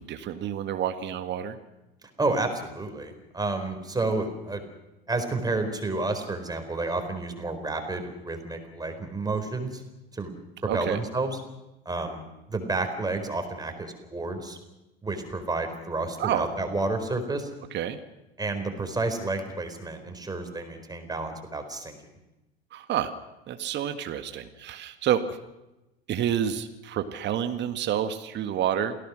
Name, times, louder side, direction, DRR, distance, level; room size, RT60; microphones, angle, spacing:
voice 1, 0.0-1.6 10.7-11.0 16.2-16.5 17.7-18.0 22.7-23.1 23.5-25.4 26.1-29.0, right 10 dB, 35° right, 8 dB, 1.8 m, -29 dB
voice 2, 2.2-4.6 5.1-9.8 10.1-10.3 10.6-11.3 11.8-12.2 12.5-14.6 15.0-17.5 18.4-22.0, right 3 dB, 15° right, 6 dB, 4.5 m, -30 dB
28.0 x 18.0 x 6.4 m, 0.98 s
figure-of-eight pair, 75°, 30 cm